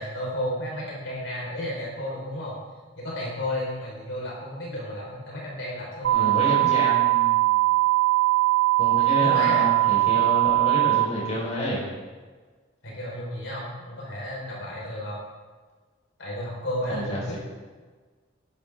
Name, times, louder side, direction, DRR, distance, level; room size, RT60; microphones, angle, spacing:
voice 1, 0.0-2.5 2.9-6.5 9.1-9.7 12.8-15.2 16.2-17.4, left 1 dB, 70° left, -4 dB, 4.9 m, -33 dB
sound 1, 6.0-11.0, right 19 dB, 85° right, 2.2 m, -21 dB
voice 2, 6.1-7.4 8.8-11.9 16.9-17.4, equal, 35° left, -5 dB, 5.5 m, -29 dB
19.0 x 12.5 x 3.8 m, 1.4 s
head